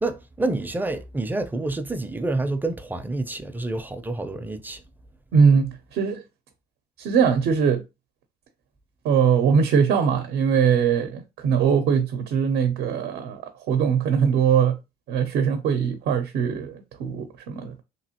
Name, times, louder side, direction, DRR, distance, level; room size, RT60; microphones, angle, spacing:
voice 1, 0.0-4.8, right 2 dB, 10° right, 0.4 m, -28 dB
voice 2, 5.3-6.2 7.0-7.8 9.0-13.4 13.7-14.8 15.1-17.7, right 6 dB, 70° right, 0.6 m, -21 dB
3.0 x 2.7 x 2.8 m
cardioid pair, 110°, 17 cm